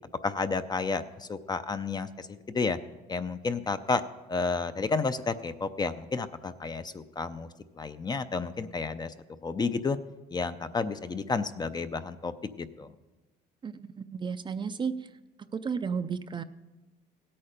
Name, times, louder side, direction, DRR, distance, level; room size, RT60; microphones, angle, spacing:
voice 1, 0.2-2.8 3.1-4.0 4.3-7.5 7.7-9.1 9.4-10.0 10.3-12.9, left 4 dB, 25° left, 11 dB, 0.6 m, -31 dB
voice 2, 13.6-15.1 15.5-16.4, right 6 dB, 30° right, 10 dB, 0.5 m, -33 dB
16.5 x 8.6 x 5.1 m, 1.1 s
cardioid pair, 110°, 17 cm